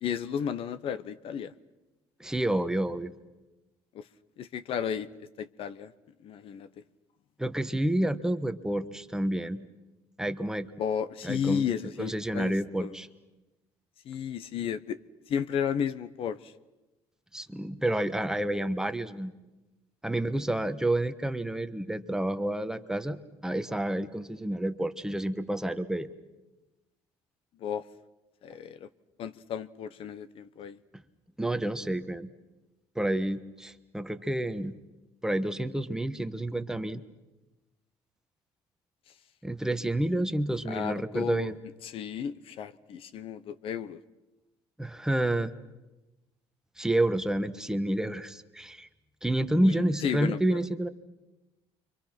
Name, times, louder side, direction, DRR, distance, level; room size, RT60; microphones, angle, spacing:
voice 1, 0.0-1.5 3.9-4.0 4.4-5.1 5.4-5.9 6.2-6.7 10.8-12.5 12.8-12.9 14.0-15.0 15.3-16.5 27.6-27.8 28.4-28.9 29.2-30.8 40.7-41.5 41.8-44.0 49.6-50.6, left 8 dB, 60° left, 14 dB, 0.9 m, -33 dB
voice 2, 2.2-3.1 7.4-9.6 10.2-10.7 11.2-11.7 12.0-13.1 17.3-19.3 20.0-26.1 30.9-31.0 31.4-32.3 32.9-34.7 35.2-37.0 39.4-41.6 44.8-45.5 46.8-48.9 49.2-50.9, right 1 dB, 5° right, 8 dB, 1.2 m, -29 dB
29.5 x 25.0 x 6.0 m, 1.0 s
cardioid pair, 110°, 11 cm